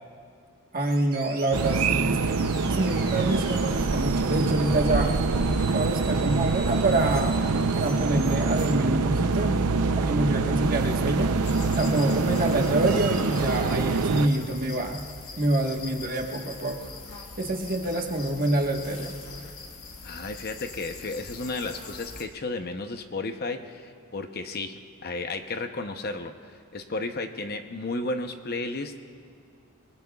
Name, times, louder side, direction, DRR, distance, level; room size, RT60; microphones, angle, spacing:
voice 1, 0.7-2.4 2.7-5.1 5.7-7.4 7.7-9.6 10.0-11.3 11.8-15.0 15.4-16.8 17.4-19.1, right 2 dB, 40° right, 1 dB, 1.4 m, -26 dB
sound 1, 0.8-8.7, right 4 dB, 25° right, 2.2 m, -42 dB
sound 2, 1.5-14.3, right 4 dB, 75° right, 0.6 m, -25 dB
sound 3, 11.4-22.2, left 4 dB, 70° left, 1.6 m, -42 dB
voice 2, 20.0-26.3 26.7-29.0, left 3 dB, 45° left, 7 dB, 0.8 m, -33 dB
28.5 x 20.0 x 2.4 m, 2.3 s
head